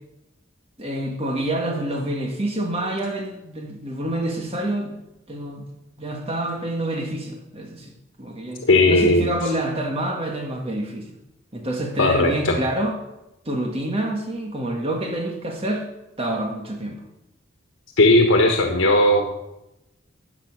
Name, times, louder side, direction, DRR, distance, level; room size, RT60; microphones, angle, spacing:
voice 1, 0.8-4.9 5.3-5.7 6.0-7.9 8.2-11.2 11.5-12.9 13.4-15.8 16.2-17.0, right 1 dB, 30° right, 2 dB, 1.7 m, -27 dB
voice 2, 8.6-9.3 12.0-12.6 18.0-19.3, left 1 dB, 90° left, 3 dB, 1.4 m, -17 dB
14.0 x 8.9 x 6.1 m, 0.91 s
head